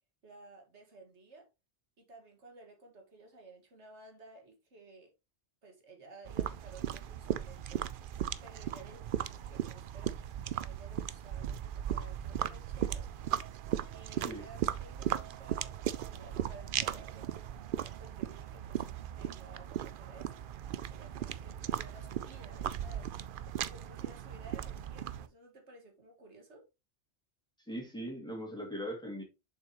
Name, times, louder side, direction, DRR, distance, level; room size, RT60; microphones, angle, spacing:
voice 1, 0.2-1.5 2.0-5.1 5.6-7.9 8.4-13.1 13.9-17.4 17.8-18.8 19.1-20.3 20.9-23.1 23.4-26.7, right 2 dB, 90° right, 2.1 m, -55 dB
sound 1, 6.3-25.3, right 10 dB, 60° right, 0.6 m, -37 dB
voice 2, 27.7-29.2, equal, 5° left, 2.3 m, -40 dB
7.2 x 5.7 x 3.0 m
omnidirectional pair, 1.1 m